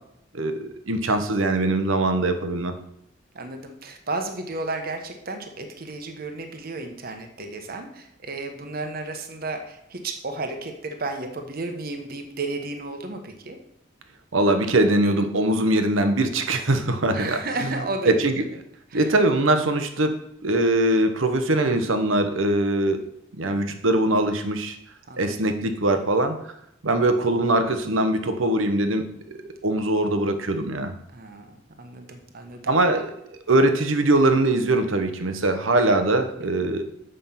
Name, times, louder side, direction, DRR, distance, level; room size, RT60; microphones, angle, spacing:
voice 1, 0.3-2.7 14.3-17.7 18.1-18.4 18.9-23.0 23.3-24.8 25.2-26.4 26.8-30.9 32.7-33.1 33.5-36.8, right 2 dB, 90° right, 8 dB, 1.0 m, -22 dB
voice 2, 3.3-13.6 17.1-18.2 18.9-19.1 23.0-23.1 25.1-25.3 31.1-32.7 36.4-36.7, right 2 dB, 50° right, 5 dB, 1.0 m, -33 dB
7.6 x 5.5 x 5.7 m, 0.77 s
head